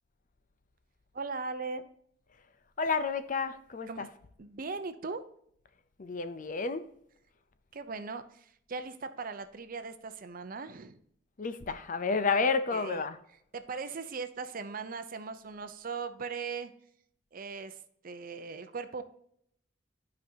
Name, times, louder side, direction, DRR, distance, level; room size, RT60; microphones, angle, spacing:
voice 1, 1.1-1.8 3.9-4.1 4.4-5.2 7.7-11.0 12.7-13.0 13.5-16.7 17.3-17.8 18.0-19.0, right 4 dB, 50° right, 0.6 m, -39 dB
voice 2, 2.8-4.1 6.0-6.9 11.4-13.2, left 4 dB, 45° left, 0.6 m, -30 dB
12.0 x 5.2 x 2.8 m
head